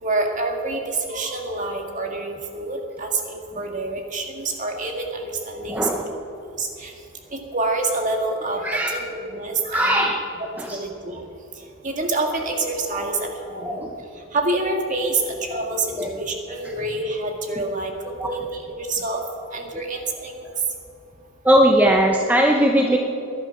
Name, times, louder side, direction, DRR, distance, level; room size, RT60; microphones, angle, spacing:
voice 1, 0.0-6.0 6.6-6.9 7.3-10.1 10.6-11.2 11.8-13.9 14.3-19.2 19.5-20.4, right 2 dB, 35° right, 2 dB, 1.9 m, -27 dB
voice 2, 5.7-6.1 8.6-9.0 9.7-10.2 10.6-10.8 12.9-13.0 13.6-13.9 15.5-15.7 16.0-16.1 16.6-16.7 17.6-17.7 18.2-18.3 21.4-23.0, right 1 dB, 10° right, 1 dB, 0.7 m, -19 dB
19.5 x 11.0 x 5.9 m, 2.8 s
head